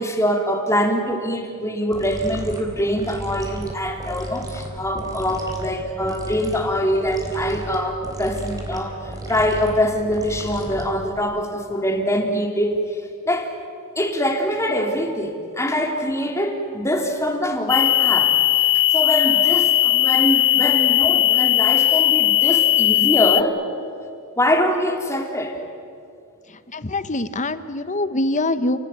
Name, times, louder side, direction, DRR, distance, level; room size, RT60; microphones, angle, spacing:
voice 1, 0.0-13.6 14.0-18.4 18.7-23.6 24.4-25.6, equal, 15° left, 3 dB, 3.0 m, -23 dB
sound 1, 1.9-11.2, right 1 dB, 15° right, 4.0 m, -34 dB
sound 2, 17.7-23.4, left 15 dB, 60° left, 0.8 m, -17 dB
voice 2, 26.7-28.8, left 2 dB, 35° left, 12 dB, 1.1 m, -24 dB
29.5 x 19.0 x 9.5 m, 2.5 s
head